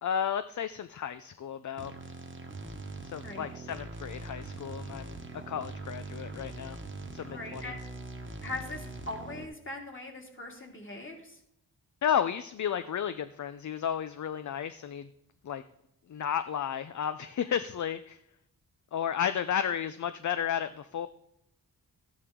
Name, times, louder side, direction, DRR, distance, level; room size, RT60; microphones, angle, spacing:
voice 1, 0.0-1.9 3.0-6.8 7.1-7.7 12.0-15.1 15.4-15.6 16.1-18.2 18.9-21.1, left 8 dB, 45° left, 11 dB, 0.4 m, -33 dB
sound 1, 1.8-9.4, right 2 dB, 30° right, 1.2 m, -42 dB
voice 2, 7.3-7.8 8.4-11.4, left 2 dB, 30° left, 1 dB, 2.3 m, -40 dB
13.0 x 9.5 x 3.7 m, 0.78 s
wide cardioid pair, 110°, 41 cm